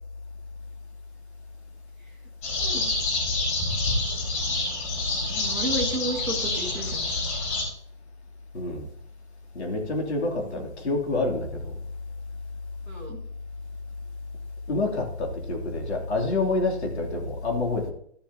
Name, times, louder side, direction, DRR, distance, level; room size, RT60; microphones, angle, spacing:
sound 1, 2.4-7.6, left 2 dB, 30° left, 4.4 m, -27 dB
voice 1, 2.5-2.9 5.3-7.0 12.9-13.2, right 1 dB, 5° left, 0.7 m, -32 dB
voice 2, 8.5-8.9 9.5-11.7 14.7-17.9, left 2 dB, 65° left, 3.0 m, -27 dB
13.5 x 7.2 x 2.8 m
hypercardioid pair, 165°, 35 cm